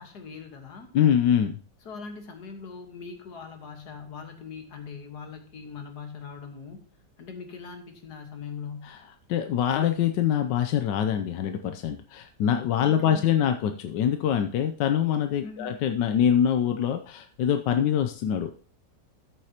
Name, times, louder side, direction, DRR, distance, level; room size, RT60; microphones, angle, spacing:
voice 1, 0.0-0.9 1.8-6.8 7.2-8.9 12.8-13.5 15.4-15.8, left 5 dB, 70° left, 5 dB, 2.0 m, -41 dB
voice 2, 0.9-1.5 8.8-8.9 9.3-18.5, left 9 dB, 85° left, 7 dB, 1.3 m, -24 dB
13.5 x 7.6 x 2.9 m, 0.42 s
omnidirectional pair, 1.8 m